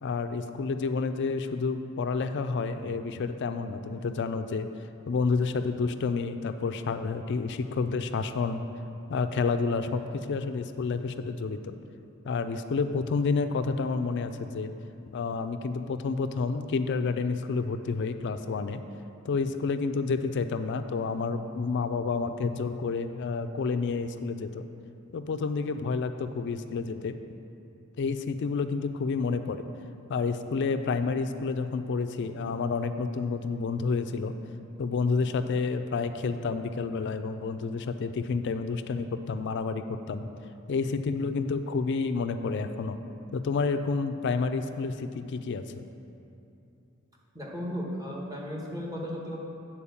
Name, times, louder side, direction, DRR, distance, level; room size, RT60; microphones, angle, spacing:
voice 1, 0.0-4.7 5.1-8.6 9.1-11.7 12.2-14.7 15.1-18.8 19.2-24.6 25.1-27.2 28.0-29.6 30.1-34.3 34.8-40.3 40.7-43.0 43.3-45.8, left 4 dB, 55° left, 9 dB, 0.4 m, -29 dB
voice 2, 47.3-49.4, equal, 15° right, -3 dB, 1.3 m, -35 dB
8.7 x 4.5 x 7.0 m, 2.8 s
head